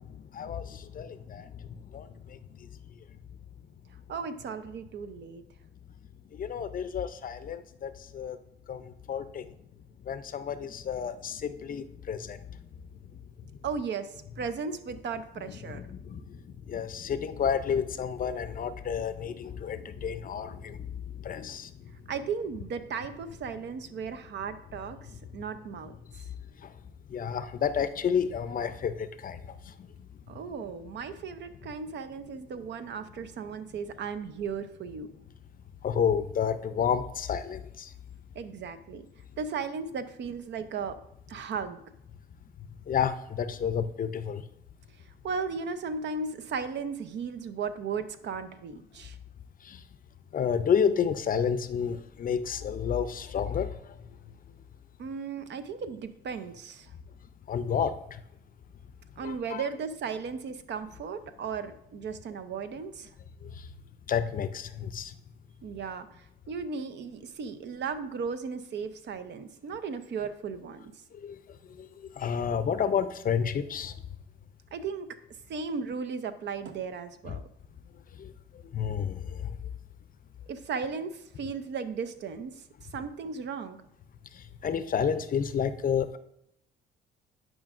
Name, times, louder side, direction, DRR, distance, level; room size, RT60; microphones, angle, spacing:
voice 1, 0.0-1.6 1.9-2.7 6.4-8.4 8.7-9.5 10.1-12.4 15.7-21.7 26.6-26.7 27.1-29.4 29.7-29.9 35.8-37.9 42.9-44.4 49.6-49.8 50.3-53.9 57.5-58.2 59.2-59.6 63.4-63.5 64.1-65.1 71.2-71.4 71.8-71.9 72.1-73.9 77.3-77.4 78.2-78.3 78.7-79.5 84.3-86.2, left 7 dB, 45° left, 12 dB, 0.5 m, -31 dB
voice 2, 4.1-5.4 13.6-15.8 22.1-25.0 25.3-25.9 30.3-35.1 38.3-39.1 39.4-41.0 41.3-41.8 45.2-49.2 55.0-56.9 59.2-63.1 65.6-70.9 74.7-75.2 75.5-77.4 80.5-82.6 82.9-83.8, right 5 dB, 65° right, 11 dB, 0.6 m, -36 dB
11.0 x 5.0 x 2.5 m, 0.79 s
cardioid pair, 90°, 20 cm